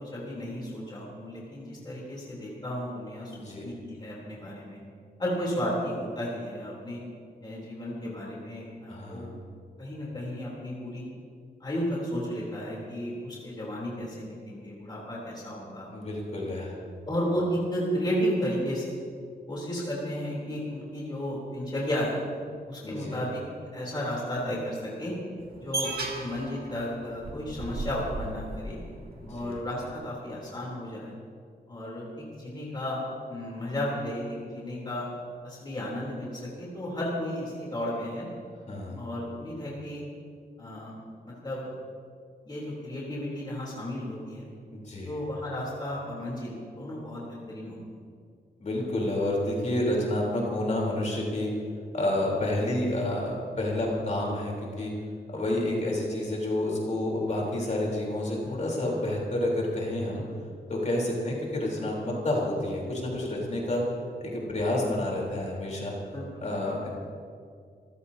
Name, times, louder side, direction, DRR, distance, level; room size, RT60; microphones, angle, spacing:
voice 1, 0.0-4.8 5.2-7.0 7.4-9.3 9.8-11.1 11.6-15.9 17.1-18.9 19.5-22.2 22.7-23.4 23.7-25.1 25.6-28.8 29.3-31.1 31.7-33.0 33.3-35.1 35.4-38.3 39.0-40.0 40.6-40.9 41.2-41.7 42.4-44.5 45.0-47.8 66.1-66.2, equal, 25° left, -5 dB, 3.4 m, -33 dB
voice 2, 3.3-3.7 8.9-9.3 15.9-16.8 22.8-23.2 29.2-29.6 38.7-39.0 44.7-45.1 48.6-51.5 51.9-54.9 55.3-60.2 60.7-63.8 64.2-65.9 66.4-66.9, left 1 dB, 45° left, -3 dB, 3.7 m, -29 dB
sound 1, 25.4-29.6, right 2 dB, 65° right, 2.2 m, -36 dB
27.5 x 15.0 x 2.8 m, 2.2 s
wide cardioid pair, 175°, 17 cm